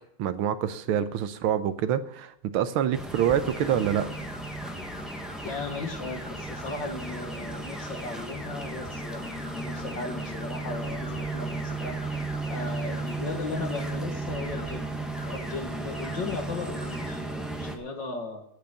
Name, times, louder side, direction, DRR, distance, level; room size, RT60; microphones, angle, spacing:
voice 1, 0.2-4.1, right 9 dB, 80° right, 12 dB, 1.6 m, -26 dB
sound 1, 2.9-17.8, right 2 dB, ahead, 1.3 m, -35 dB
sound 2, 3.1-13.2 13.5-14.0 14.3-14.8 15.1-15.6 15.9-16.4 16.7-17.2, left 2 dB, 20° left, 1.3 m, -44 dB
voice 2, 5.4-12.0 12.5-18.5, left 3 dB, 60° left, 4 dB, 2.3 m, -37 dB
9.4 x 8.5 x 8.9 m, 0.72 s
omnidirectional pair, 2.3 m